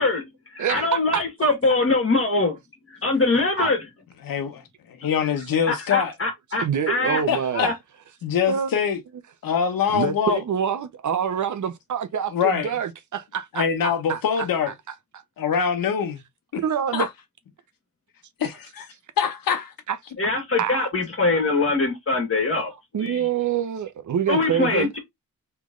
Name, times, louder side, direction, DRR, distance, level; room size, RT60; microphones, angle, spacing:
voice 1, 0.0-2.6 2.9-3.9 5.7-7.2 7.5-7.7 20.2-23.2 24.3-25.0, left 3 dB, 40° left, 1.9 m, -23 dB
voice 2, 0.6-1.5 3.6-3.7 6.6-7.7 8.5-8.7 9.9-14.5 15.1-15.2 16.6-17.1 19.9-20.0 20.6-20.9 22.9-24.9, right 8 dB, 60° right, 0.7 m, -26 dB
voice 3, 5.0-6.1 7.3-7.7 8.2-9.0 9.4-10.4 12.3-12.7 13.5-14.7 15.4-16.2 16.9-17.1 18.4-19.7, left 7 dB, 90° left, 1.1 m, -24 dB
3.4 x 3.1 x 3.7 m
wide cardioid pair, 100°, 33 cm